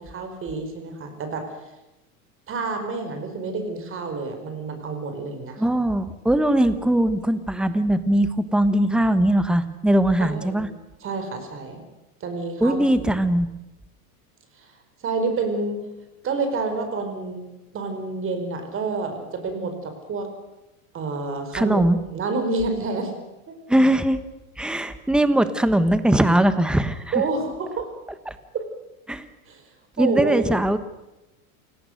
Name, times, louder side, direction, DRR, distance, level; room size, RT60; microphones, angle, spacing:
voice 1, 0.0-1.5 2.5-5.6 10.2-10.7 11.0-11.8 12.2-13.3 14.6-14.7 15.0-15.8 16.2-17.5 17.7-20.3 20.9-21.8 22.1-23.2 23.5-23.6 27.1-27.9 28.5-28.7 29.5-29.6 30.0-30.5, right 3 dB, 30° right, 7 dB, 4.7 m, -28 dB
voice 2, 5.6-10.7 12.6-13.5 21.5-22.0 23.7-24.2 24.6-27.0 29.1-29.2 30.0-30.8, right 1 dB, ahead, 12 dB, 1.1 m, -20 dB
28.0 x 18.5 x 6.5 m, 0.99 s
supercardioid pair, 140°, 44 cm